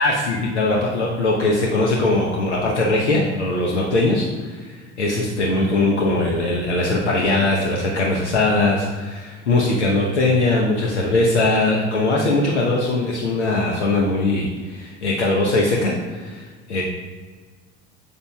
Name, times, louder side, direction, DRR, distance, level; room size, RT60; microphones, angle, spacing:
voice 1, 0.0-16.8, left 2 dB, 75° left, -2 dB, 0.9 m, -20 dB
7.3 x 6.7 x 2.3 m, 1.5 s
figure-of-eight pair, 70°, 35 cm